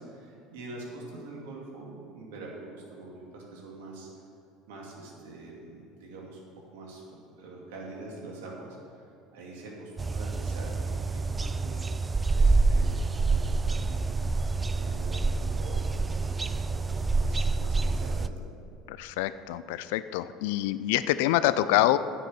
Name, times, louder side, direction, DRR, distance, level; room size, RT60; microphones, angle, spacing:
voice 1, 0.0-4.1 4.7-6.4 6.7-7.0 7.4-11.7 12.3-18.4, right 2 dB, 80° right, -2 dB, 2.4 m, -44 dB
sound 1, 10.0-18.3, right 3 dB, 20° right, 0.4 m, -27 dB
voice 2, 18.9-22.0, left 14 dB, 75° left, 14 dB, 0.4 m, -26 dB
9.6 x 6.6 x 7.3 m, 2.6 s
hypercardioid pair, 80°, 0 cm